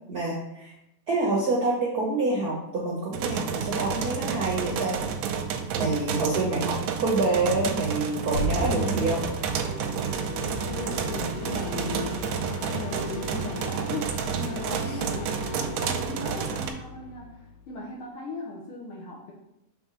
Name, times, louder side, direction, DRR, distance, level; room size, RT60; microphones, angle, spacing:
voice 1, 0.1-0.7 1.1-5.0 5.7-9.2 14.8-14.9, right 2 dB, 60° right, -3 dB, 0.9 m, -27 dB
sound 1, 3.1-16.7, right 7 dB, 80° right, 1.7 m, -30 dB
sound 2, 8.3-17.7, left 1 dB, 90° left, 2.3 m, -36 dB
voice 2, 10.7-19.3, left 2 dB, 65° left, -3 dB, 1.4 m, -37 dB
5.3 x 4.0 x 6.0 m, 0.86 s
omnidirectional pair, 3.5 m